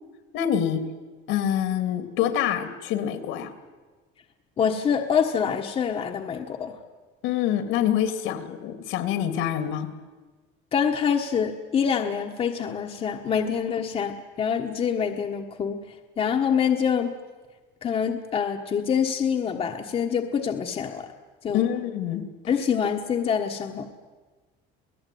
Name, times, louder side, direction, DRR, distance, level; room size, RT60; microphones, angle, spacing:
voice 1, 0.3-0.8 1.3-3.5 7.2-9.9 21.5-22.2, left 10 dB, 75° left, 10 dB, 2.8 m, -26 dB
voice 2, 4.6-6.7 10.7-15.8 16.2-17.1 17.8-21.1 21.4-21.7 22.5-23.9, left 7 dB, 30° left, 3 dB, 1.4 m, -25 dB
27.5 x 18.5 x 9.4 m, 1.3 s
cardioid pair, 175°, 21 cm